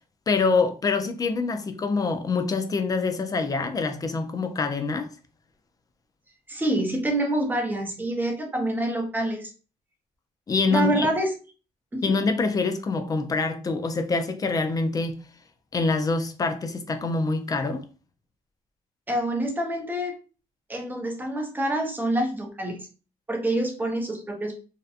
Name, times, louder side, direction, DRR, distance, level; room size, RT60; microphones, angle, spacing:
voice 1, 0.3-5.1 10.5-11.1 12.0-15.2 15.7-17.8, left 3 dB, 25° left, 0.4 m, -25 dB
voice 2, 6.5-9.5 10.7-11.3 11.9-12.2 19.1-20.2 20.7-22.8 23.3-24.6, right 1 dB, 15° right, 0.7 m, -26 dB
2.7 x 2.1 x 2.4 m
cardioid pair, 110°, 14 cm